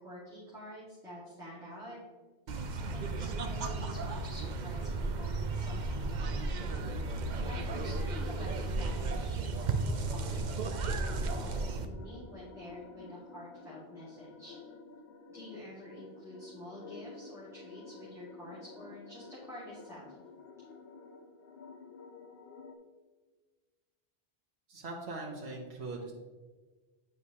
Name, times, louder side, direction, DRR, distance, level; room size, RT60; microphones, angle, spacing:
voice 1, 0.0-2.0 2.9-7.0 7.5-14.5 15.3-20.1, equal, 5° right, -10 dB, 1.8 m, -48 dB
sound 1, 2.5-11.9, right 3 dB, 55° right, 0.6 m, -34 dB
sound 2, 4.1-22.8, left 4 dB, 70° left, 0.9 m, -52 dB
voice 2, 24.7-26.1, right 2 dB, 80° right, -3 dB, 1.3 m, -41 dB
9.2 x 4.8 x 2.9 m, 1.3 s
omnidirectional pair, 1.1 m